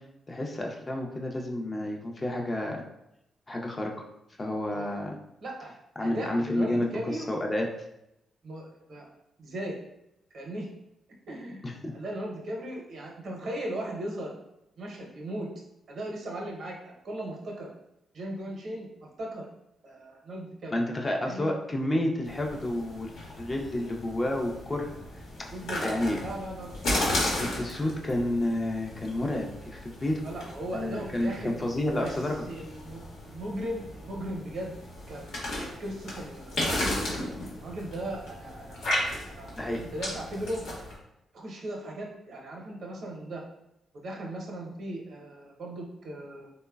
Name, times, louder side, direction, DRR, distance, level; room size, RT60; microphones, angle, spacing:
voice 1, 0.3-2.8 3.5-3.9 4.4-5.2 6.0-7.7 11.6-11.9 20.7-24.9 25.4-25.5 25.8-26.2 27.4-30.2 30.7-32.4 39.6-39.8, left 1 dB, 30° left, 0 dB, 0.5 m, -30 dB
voice 2, 5.4-5.7 6.0-7.3 8.4-9.1 9.4-9.8 10.3-10.7 11.3-11.6 11.9-14.3 14.8-15.5 15.9-17.7 18.1-18.9 19.2-19.5 19.8-20.7 21.2-21.5 25.5-26.8 30.2-31.6 31.9-32.1 32.5-33.0 33.3-34.7 35.1-36.9 37.6-39.1 39.4-40.6 41.3-43.4 43.9-46.5, right 1 dB, 65° right, -1 dB, 0.6 m, -37 dB
sound 1, 22.2-41.0, left 1 dB, 80° left, 0.9 m, -35 dB
3.1 x 2.1 x 2.3 m, 0.83 s
cardioid pair, 75°, 0 cm